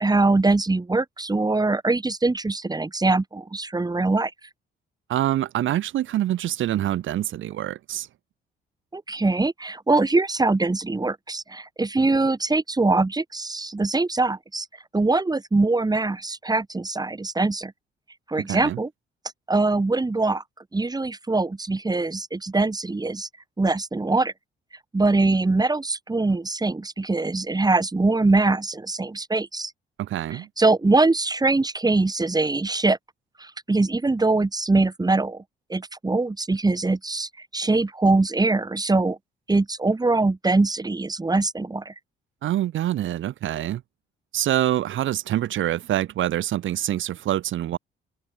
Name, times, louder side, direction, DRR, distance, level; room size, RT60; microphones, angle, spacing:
voice 1, 0.0-4.3 8.9-14.7 14.9-17.7 18.3-18.9 19.5-20.4 20.7-23.3 23.6-24.3 24.9-29.7 30.3-33.0 33.4-35.4 35.7-39.2 39.5-41.9, right 3 dB, 20° right, 6.8 m, -22 dB
voice 2, 5.1-8.1 18.5-18.8 30.0-30.5 42.4-43.8 44.3-47.8, right 12 dB, 75° right, 3.4 m, -25 dB
cardioid pair, 90°, 20 cm